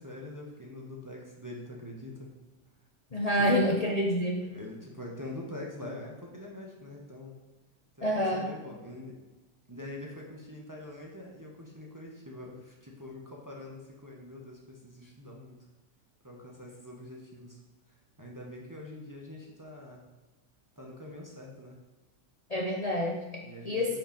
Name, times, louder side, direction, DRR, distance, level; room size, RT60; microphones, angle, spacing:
voice 1, 0.0-2.3 3.3-3.7 4.5-7.4 8.0-9.2 9.7-15.6 16.2-17.6 18.2-20.1 20.8-21.8 23.4-24.0, left 1 dB, 15° right, -2 dB, 0.8 m, -44 dB
voice 2, 3.1-4.4 8.0-8.5 22.5-24.0, equal, 65° left, -2 dB, 0.3 m, -28 dB
6.0 x 5.1 x 5.1 m, 1.2 s
omnidirectional pair, 1.9 m